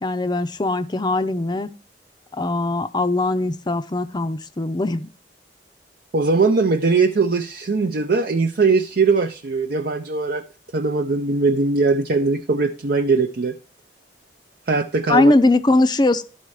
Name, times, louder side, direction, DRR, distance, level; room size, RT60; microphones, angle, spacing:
voice 1, 0.0-1.7 2.4-5.1 15.1-16.2, left 2 dB, 25° left, 0.5 m, -20 dB
voice 2, 6.1-10.4 10.7-13.5 14.7-15.3, right 4 dB, 55° right, 0.6 m, -20 dB
12.0 x 4.2 x 4.8 m
head